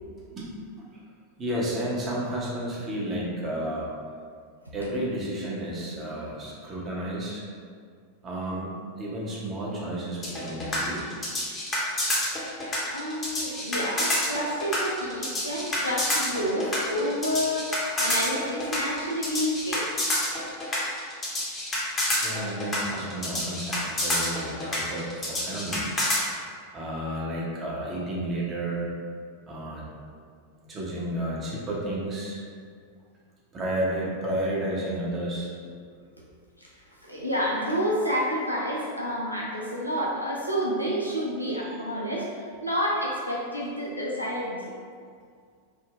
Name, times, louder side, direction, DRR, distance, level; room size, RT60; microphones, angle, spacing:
voice 1, 0.3-0.9 1.4-3.9 4.7-7.4 8.2-11.0 17.0-17.1 20.2-20.3 22.2-25.9 26.7-28.8 29.5-29.9 30.7-32.4 33.5-35.5 41.7-41.8, right 1 dB, 25° right, -5 dB, 0.7 m, -32 dB
sound 1, 10.2-26.2, left 1 dB, 20° left, 0.7 m, -28 dB
voice 2, 12.9-20.1 36.6-36.7 37.0-44.6, equal, 90° right, -5 dB, 0.4 m, -29 dB
3.5 x 2.0 x 2.4 m, 2.1 s
figure-of-eight pair, 90°, 0 cm